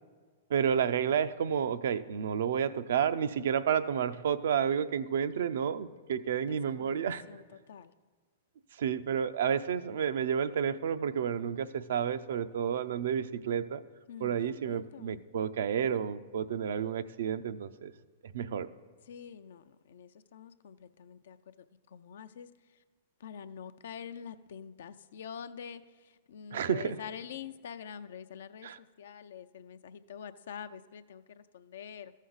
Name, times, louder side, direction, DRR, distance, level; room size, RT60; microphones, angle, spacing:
voice 1, 0.5-7.2 8.8-13.8 14.2-17.9 18.3-18.7 26.5-27.0 28.6-28.8, right 8 dB, 70° right, 12 dB, 0.4 m, -30 dB
voice 2, 6.4-7.0 7.3-7.9 14.1-15.2 19.1-22.8 23.2-32.1, left 7 dB, 70° left, 11 dB, 0.5 m, -46 dB
14.0 x 6.3 x 4.0 m, 1.5 s
hypercardioid pair, 115°, 0 cm